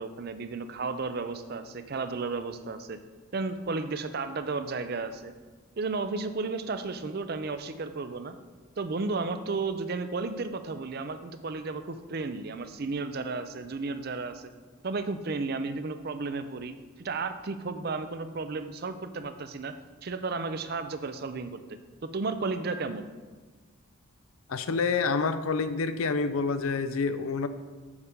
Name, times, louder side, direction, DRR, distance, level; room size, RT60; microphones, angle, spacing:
voice 1, 0.0-3.0 3.3-5.3 5.8-8.4 8.8-14.5 14.8-19.8 20.0-21.6 22.0-23.1, right 3 dB, 45° right, 10 dB, 0.5 m, -33 dB
voice 2, 24.5-27.5, left 4 dB, 80° left, 11 dB, 0.5 m, -28 dB
7.2 x 4.9 x 6.6 m, 1.4 s
head